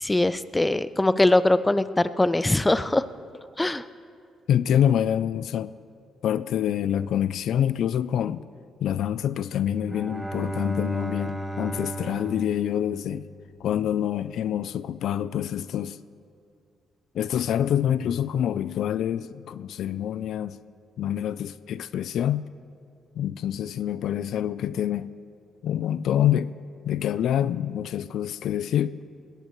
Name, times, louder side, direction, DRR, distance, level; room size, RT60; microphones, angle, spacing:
voice 1, 0.0-3.0 3.6-3.8, left 2 dB, 15° left, 0.5 m, -22 dB
voice 2, 4.5-5.7 6.2-8.4 8.8-13.3 13.6-16.0 17.1-20.6 21.0-22.5 23.2-25.1 25.6-26.5 26.9-29.0, left 10 dB, 75° left, 0.3 m, -26 dB
Bowed string instrument, 9.7-13.8, equal, 5° right, 1.0 m, -34 dB
21.0 x 17.5 x 3.1 m
cardioid pair, 90°, 0 cm